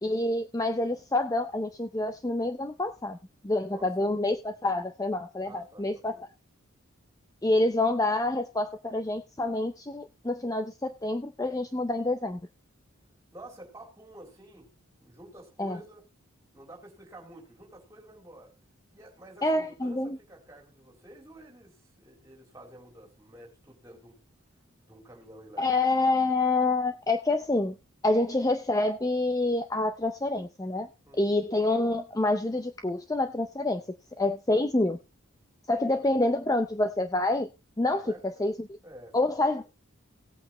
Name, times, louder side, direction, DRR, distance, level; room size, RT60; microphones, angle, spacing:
voice 1, 0.0-3.2 3.4-6.2 7.4-12.4 15.6-15.8 19.4-20.2 25.6-27.8 28.0-30.9 31.1-33.8 34.2-35.0 35.7-37.5 37.8-38.6 39.1-39.6, left 2 dB, 15° left, 7 dB, 0.5 m, -27 dB
voice 2, 3.7-4.1 5.4-6.2 13.3-14.7 15.0-16.0 16.5-18.5 18.9-24.2 24.8-25.7 31.1-31.3 35.9-36.1 37.9-38.5 38.8-39.6, right 1 dB, 15° right, -1 dB, 3.5 m, -50 dB
18.5 x 8.5 x 3.0 m, 0.28 s
head